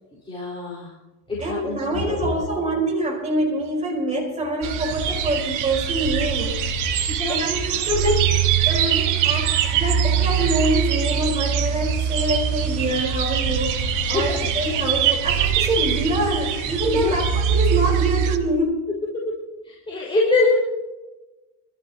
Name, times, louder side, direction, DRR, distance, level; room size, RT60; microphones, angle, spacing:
voice 1, 0.3-0.9 1.3-2.2 7.2-7.4 14.1-14.3 16.9-17.3 19.1-19.4 19.6-20.5, left 3 dB, 15° left, -6 dB, 4.7 m, -24 dB
voice 2, 1.4-6.6 7.3-18.8, right 1 dB, 20° right, -2 dB, 4.7 m, -25 dB
sound 1, 4.6-18.4, right 8 dB, 60° right, 1.4 m, -23 dB
27.0 x 13.5 x 3.0 m, 1.1 s
cardioid pair, 135°, 34 cm